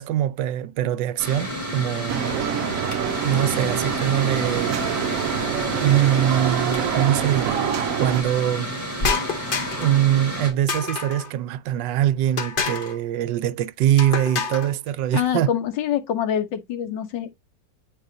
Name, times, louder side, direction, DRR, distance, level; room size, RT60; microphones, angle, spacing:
voice 1, 0.0-2.3 3.2-4.8 5.8-8.7 9.8-15.5, right 11 dB, 80° right, 1.2 m, -23 dB
Mechanical fan, 1.2-10.5, equal, 10° right, 3.1 m, -30 dB
sound 1, 2.1-8.2, right 10 dB, 65° right, 0.9 m, -26 dB
sound 2, 9.0-10.0 10.7-11.3 12.4-13.0 14.0-14.7, left 5 dB, 45° left, 0.7 m, -27 dB
voice 2, 15.1-17.4, left 9 dB, 85° left, 1.7 m, -25 dB
9.2 x 3.9 x 2.7 m
omnidirectional pair, 1.9 m